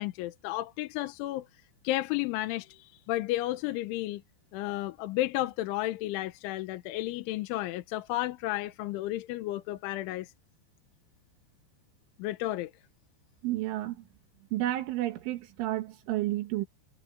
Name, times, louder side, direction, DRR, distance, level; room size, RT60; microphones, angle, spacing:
voice 1, 0.0-1.5 1.8-4.2 4.5-10.3 12.2-12.7, left 16 dB, 85° left, 3.3 m, -32 dB
voice 2, 13.4-14.0 14.5-16.7, right 15 dB, 85° right, 4.0 m, -31 dB
omnidirectional pair, 5.5 m